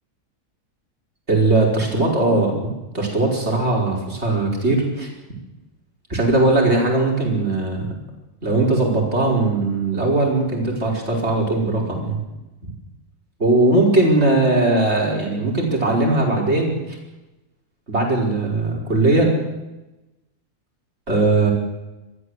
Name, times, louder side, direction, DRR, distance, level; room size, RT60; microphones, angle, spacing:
voice 1, 1.3-2.5 2.9-5.1 6.1-7.9 8.4-12.2 13.4-17.0 17.9-19.3 21.1-21.5, right 2 dB, 40° right, 0 dB, 5.4 m, -19 dB
23.0 x 15.0 x 8.2 m, 1.0 s
omnidirectional pair, 1.7 m